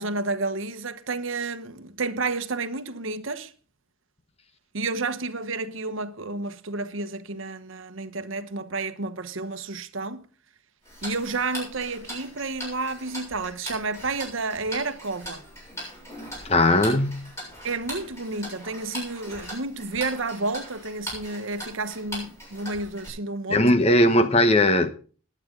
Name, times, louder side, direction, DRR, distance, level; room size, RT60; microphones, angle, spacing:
voice 1, 0.0-3.5 4.7-10.2 11.0-15.4 17.6-23.7, right 3 dB, 65° right, 1.1 m, -31 dB
Tick-tock, 10.8-23.1, equal, 15° left, 7.1 m, -40 dB
voice 2, 16.4-17.3 23.5-24.9, left 1 dB, 30° left, 1.1 m, -19 dB
20.5 x 8.8 x 3.8 m
head